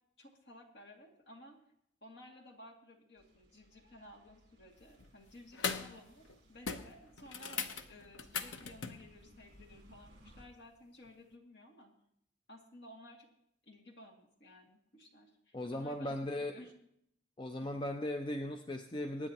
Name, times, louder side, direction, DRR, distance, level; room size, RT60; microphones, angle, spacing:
voice 1, 0.2-1.6 2.0-11.9 12.5-13.3 13.6-16.7 17.6-17.8, left 1 dB, 60° left, 0 dB, 2.4 m, -56 dB
sound 1, 3.2-10.5, equal, 55° right, 2.9 m, -62 dB
sound 2, 4.8-5.1 5.5-6.0 6.2-6.4 6.7-9.0 11.1-11.2, left 5 dB, 80° left, 0.8 m, -39 dB
voice 2, 15.5-16.6 17.4-19.3, left 1 dB, 25° left, 5 dB, 0.5 m, -38 dB
24.0 x 9.9 x 3.0 m, 0.72 s
head